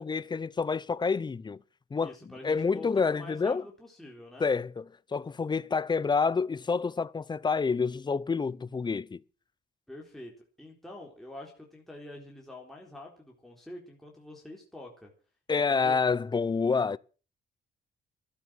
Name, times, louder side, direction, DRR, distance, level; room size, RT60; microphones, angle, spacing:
voice 1, 0.0-1.6 1.9-2.1 2.4-3.6 4.4-9.2 15.5-17.0, left 5 dB, 25° left, 0.7 m, -28 dB
voice 2, 2.0-4.5 9.9-15.1 15.7-16.0, left 1 dB, ahead, 3.8 m, -46 dB
13.0 x 12.0 x 7.7 m
cardioid pair, 105°, 19 cm